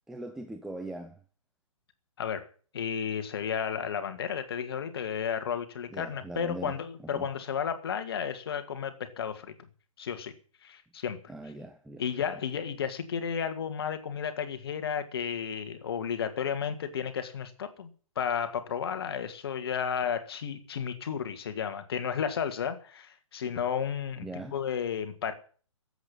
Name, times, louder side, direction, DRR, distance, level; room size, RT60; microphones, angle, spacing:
voice 1, 0.1-1.2 5.9-6.8 7.1-7.3 11.3-12.1 12.3-12.4 24.2-24.6, right 2 dB, ahead, 0.7 m, -40 dB
voice 2, 2.2-2.5 2.7-9.6 10.0-10.3 10.6-11.2 12.0-17.9 18.2-24.3 24.5-25.3, left 7 dB, 45° left, 2.1 m, -33 dB
13.0 x 8.2 x 9.8 m
figure-of-eight pair, 125°, 17 cm